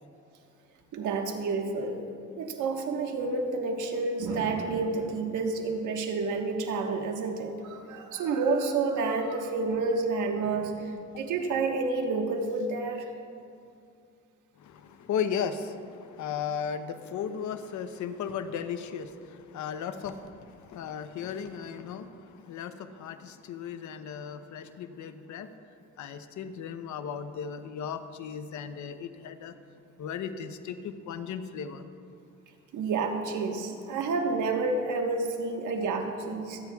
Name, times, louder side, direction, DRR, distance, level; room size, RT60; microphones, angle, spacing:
voice 1, 0.9-2.0 2.4-13.1 32.7-36.6, right 3 dB, 80° right, 3 dB, 1.4 m, -29 dB
voice 2, 14.6-25.5 26.0-29.5 30.0-31.9, left 7 dB, 75° left, 9 dB, 0.8 m, -36 dB
26.5 x 9.8 x 2.4 m, 2.5 s
cardioid pair, 90°, 30 cm